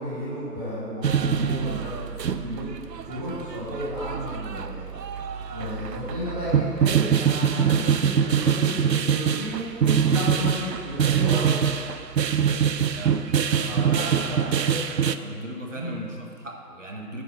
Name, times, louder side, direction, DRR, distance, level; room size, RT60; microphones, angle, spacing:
voice 1, 0.0-2.7 3.1-5.0 5.5-11.5 13.6-15.1 15.7-15.9, equal, 25° right, -11 dB, 2.3 m, -33 dB
sound 1, 1.0-15.2, right 8 dB, 85° right, 0.5 m, -24 dB
voice 2, 13.5-14.7 15.2-17.2, right 1 dB, 50° right, 1 dB, 1.1 m, -38 dB
10.5 x 3.7 x 6.2 m, 2.3 s
figure-of-eight pair, 165°, 48 cm